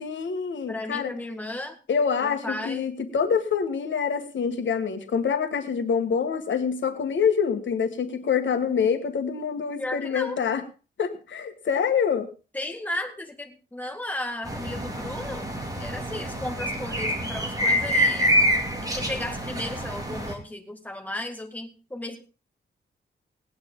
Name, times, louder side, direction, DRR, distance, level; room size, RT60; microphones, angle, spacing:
voice 1, 0.0-1.1 1.9-10.6 11.0-12.3, left 6 dB, 75° left, 7 dB, 1.6 m, -26 dB
voice 2, 0.7-1.8 2.2-2.9 9.8-10.4 12.5-15.5 15.8-18.4 18.8-22.2, left 1 dB, 10° left, 3 dB, 2.0 m, -34 dB
sound 1, 14.4-20.3, equal, 20° right, 2.5 m, -26 dB
18.5 x 9.6 x 3.8 m, 0.33 s
wide cardioid pair, 125°, 20 cm